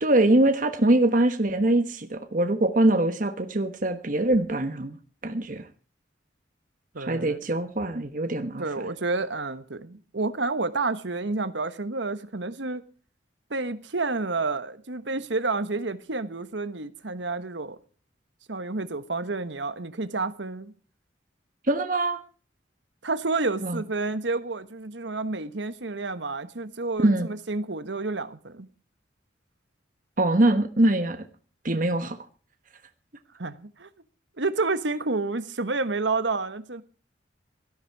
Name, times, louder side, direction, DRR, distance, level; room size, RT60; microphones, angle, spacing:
voice 1, 0.0-5.0 5.2-5.6 7.0-8.6 21.7-22.2 23.6-23.8 27.0-27.3 30.2-31.2 31.6-32.2, right 1 dB, 45° right, 1.3 m, -23 dB
voice 2, 6.9-7.4 8.6-12.8 13.5-17.8 18.5-20.7 23.0-28.7 33.4-33.9 34.4-36.8, right 3 dB, 75° right, 1.4 m, -29 dB
17.5 x 13.5 x 4.8 m
head